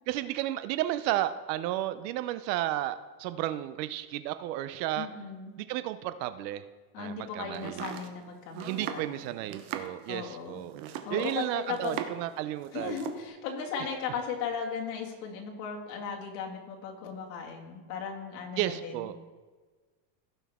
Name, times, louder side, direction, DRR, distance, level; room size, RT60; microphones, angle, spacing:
voice 1, 0.1-5.1 5.7-6.6 7.0-7.8 8.7-10.8 11.1-13.0 18.6-19.2, right 14 dB, 80° right, 13 dB, 0.8 m, -32 dB
voice 2, 5.0-5.5 6.9-9.3 10.1-10.7 11.1-12.0 12.7-19.2, left 6 dB, 80° left, 0 dB, 2.3 m, -37 dB
Domestic sounds home sounds, 7.5-12.3 12.6-13.2, right 10 dB, 65° right, 1.1 m, -40 dB
16.5 x 5.7 x 3.6 m, 1.4 s
cardioid pair, 155°, 49 cm